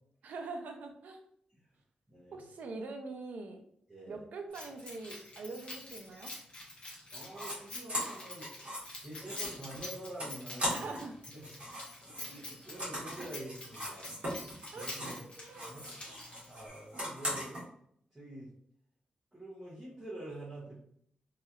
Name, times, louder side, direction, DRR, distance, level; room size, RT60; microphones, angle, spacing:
voice 1, 0.2-1.2 2.3-3.6 4.1-6.3 10.7-11.1 14.7-15.8 16.1-16.3, right 3 dB, 75° right, 5 dB, 0.5 m, -44 dB
voice 2, 2.1-2.5 3.9-4.2 7.1-8.5 9.0-10.9 11.3-11.5 12.1-14.1 14.4-15.2 15.7-16.0 16.5-17.6 18.1-18.5 19.3-20.8, right 1 dB, 15° right, -9 dB, 0.9 m, -47 dB
Keys jangling, 4.5-16.7, left 2 dB, 40° left, 0.9 m, -47 dB
sound 1, 7.3-7.6 7.9-11.1 11.4-15.2 15.5-17.6, equal, 45° right, 1.4 m, -39 dB
3.1 x 2.8 x 2.4 m, 0.68 s
wide cardioid pair, 160°, 3 cm